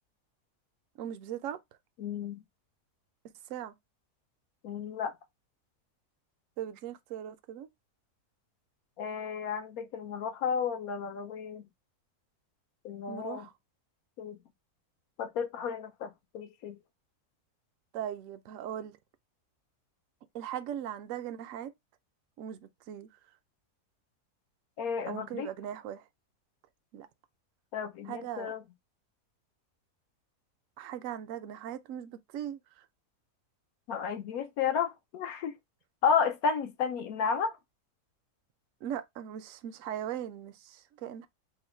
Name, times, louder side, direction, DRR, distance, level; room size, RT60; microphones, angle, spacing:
voice 1, 1.0-1.6 3.5-3.7 6.6-7.7 13.1-13.5 17.9-19.0 20.3-21.7 22.4-23.1 25.0-26.0 26.9-27.1 28.1-28.5 30.8-32.9 38.8-41.3, right 10 dB, 70° right, 0.8 m, -39 dB
voice 2, 2.0-2.4 4.6-5.1 9.0-11.7 12.8-13.5 14.2-14.4 15.2-16.8 24.8-25.5 27.7-28.6 33.9-35.5 36.0-37.6, left 6 dB, 70° left, 1.1 m, -32 dB
3.8 x 2.1 x 4.3 m
omnidirectional pair, 1.6 m